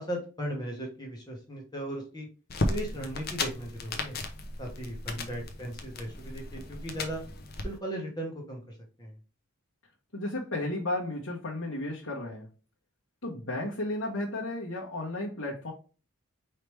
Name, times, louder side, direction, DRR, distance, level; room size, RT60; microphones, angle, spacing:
voice 1, 0.0-2.3 2.6-4.2 4.6-7.2 7.6-9.2, right 1 dB, 20° left, -1 dB, 1.2 m, -37 dB
sound 1, 2.5-7.7, left 2 dB, 45° left, 0.8 m, -35 dB
voice 2, 10.1-12.5 13.2-15.7, left 2 dB, 65° left, -5 dB, 1.2 m, -33 dB
4.9 x 3.3 x 3.2 m, 0.35 s
head